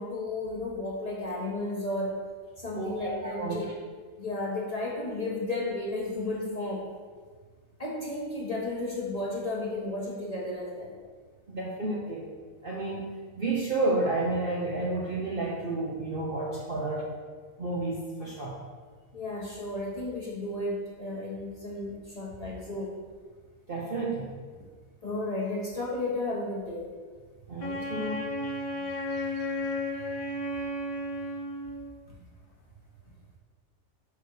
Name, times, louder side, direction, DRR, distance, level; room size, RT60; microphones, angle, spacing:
voice 1, 0.0-2.1 2.6-3.7 4.2-6.8 7.8-10.9 19.1-22.9 25.0-26.9, left 2 dB, 25° left, -5 dB, 1.3 m, -33 dB
voice 2, 2.8-3.6 11.5-12.3 12.6-13.1 13.3-17.1 17.6-18.5 23.7-24.3 27.5-28.5 28.8-29.4, right 2 dB, 45° right, -4 dB, 0.9 m, -31 dB
Wind instrument woodwind instrument, 27.6-32.0, left 1 dB, 60° left, 0.3 m, -33 dB
5.4 x 4.7 x 6.3 m, 1.5 s
omnidirectional pair, 1.6 m